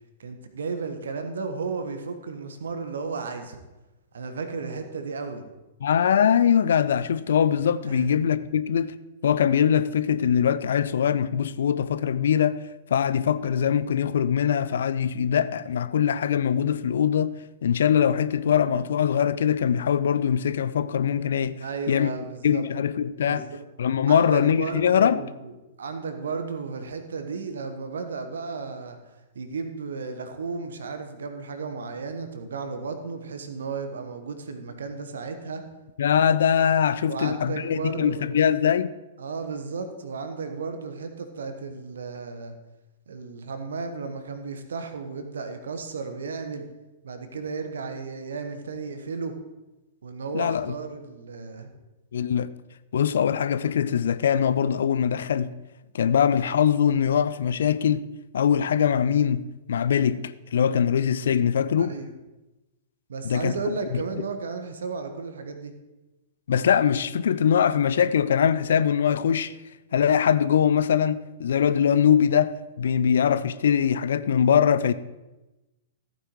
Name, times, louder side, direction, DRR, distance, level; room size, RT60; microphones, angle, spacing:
voice 1, 0.2-3.6 4.1-5.4 7.9-8.1 21.6-22.6 23.3-23.6 24.1-25.5 25.8-29.0 29.3-35.6 37.1-38.4 39.2-42.5 43.1-46.7 47.0-49.3 50.0-51.7 61.8-62.1 63.1-65.7, right 4 dB, 65° right, 1.2 m, -34 dB
voice 2, 5.8-8.9 9.2-12.6 12.9-21.6 21.9-22.1 22.4-23.4 23.8-25.2 36.0-38.9 50.3-50.7 52.1-52.5 52.9-55.5 55.9-58.1 58.3-61.9 63.2-64.0 66.5-69.5 69.9-74.9, left 8 dB, 60° left, 0.4 m, -22 dB
14.5 x 9.0 x 3.1 m
figure-of-eight pair, 105°, 0 cm